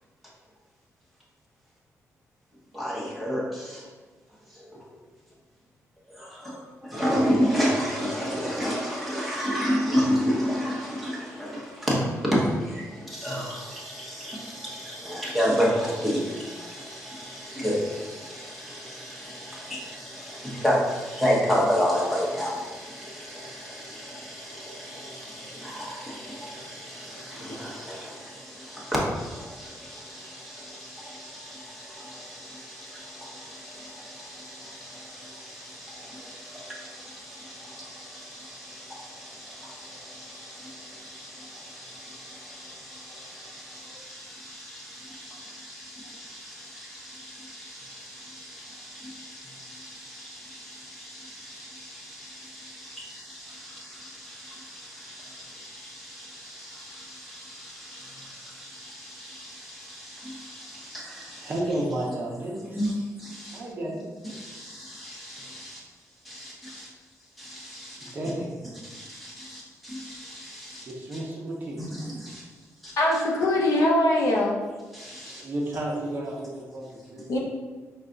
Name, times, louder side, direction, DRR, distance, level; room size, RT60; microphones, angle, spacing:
voice 1, 2.7-3.8 6.1-61.5 62.7-62.9 63.2-63.6 64.3-65.8 66.2-66.9 67.4-68.1 68.9-70.9 71.8-72.4 72.8-72.9 74.9-75.4, equal, ahead, -6 dB, 1.0 m, -32 dB
voice 2, 61.4-62.9 63.5-64.1 68.0-68.5 70.9-71.8 75.3-77.3, right 1 dB, 35° right, -2 dB, 0.8 m, -32 dB
voice 3, 73.0-74.6 77.3-77.4, left 1 dB, 75° left, -1 dB, 0.8 m, -22 dB
5.4 x 2.4 x 3.8 m, 1.3 s
wide cardioid pair, 175°, 6 cm